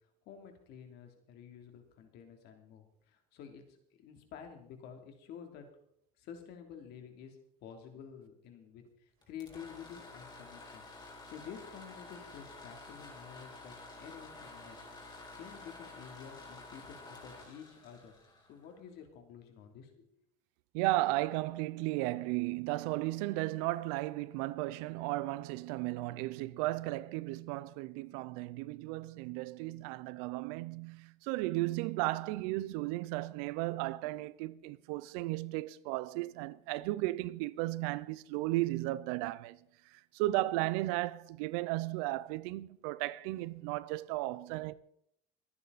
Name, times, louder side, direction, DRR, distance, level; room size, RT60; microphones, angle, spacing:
voice 1, 0.2-5.7 6.2-10.9 11.3-14.8 15.3-18.1 18.5-20.1, left 8 dB, 60° left, 3.2 m, -50 dB
sound 1, 9.2-19.0, left 2 dB, 25° left, 3.7 m, -51 dB
voice 2, 20.7-39.6 39.9-44.7, right 18 dB, 90° right, 0.7 m, -35 dB
23.5 x 9.8 x 4.2 m
cardioid pair, 140°, 19 cm